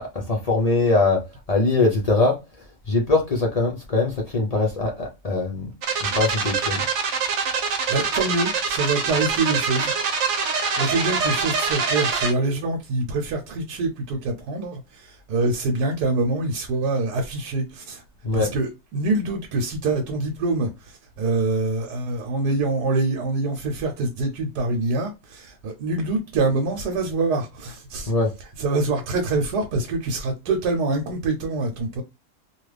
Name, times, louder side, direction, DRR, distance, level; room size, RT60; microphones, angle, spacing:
voice 1, 0.0-2.4 2.9-5.7 6.0-6.8 18.2-18.5 28.1-28.3, left 3 dB, 75° left, 0.3 m, -22 dB
sound 1, 5.8-12.3, right 5 dB, 60° right, 0.9 m, -24 dB
voice 2, 7.6-9.9 10.2-10.5 10.8-18.0 18.3-28.1 28.6-32.0, right 3 dB, 90° right, 1.2 m, -25 dB
2.9 x 2.4 x 3.2 m
omnidirectional pair, 1.7 m